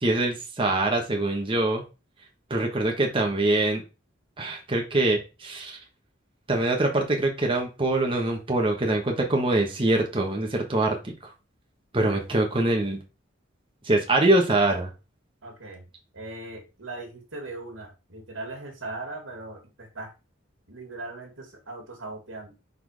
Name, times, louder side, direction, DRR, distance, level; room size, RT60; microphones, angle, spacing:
voice 1, 0.0-1.8 2.5-3.8 4.4-5.8 6.5-11.1 11.9-13.0 13.8-14.9, right 2 dB, 25° right, 1.2 m, -24 dB
voice 2, 15.4-15.9 16.1-20.1 20.7-22.6, right 2 dB, 90° right, 2.3 m, -39 dB
5.5 x 4.4 x 4.8 m
head